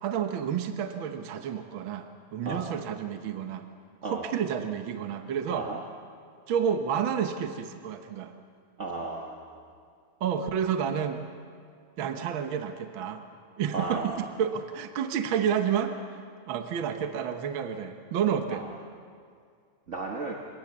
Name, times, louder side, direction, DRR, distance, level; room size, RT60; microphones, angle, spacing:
voice 1, 0.0-3.6 4.0-5.7 6.5-8.3 10.2-11.2 12.0-13.2 13.6-15.9 16.5-18.7, right 8 dB, 55° right, 6 dB, 1.5 m, -30 dB
voice 2, 5.5-5.8 8.8-9.4 13.7-14.2 19.9-20.3, right 3 dB, 35° right, 0 dB, 1.4 m, -34 dB
28.5 x 18.5 x 7.4 m, 2.2 s
omnidirectional pair, 3.3 m